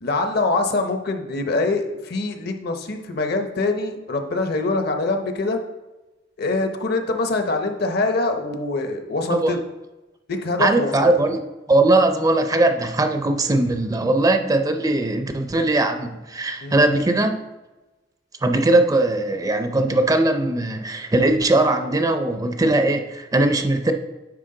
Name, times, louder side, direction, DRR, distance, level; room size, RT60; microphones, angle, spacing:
voice 1, 0.0-5.6 6.4-9.6 10.3-11.1 16.6-16.8, left 3 dB, 60° left, 5 dB, 0.8 m, -24 dB
voice 2, 10.6-11.4 11.7-17.4 18.4-23.9, right 2 dB, 20° right, 6 dB, 0.4 m, -20 dB
9.6 x 4.2 x 3.8 m, 1.1 s
head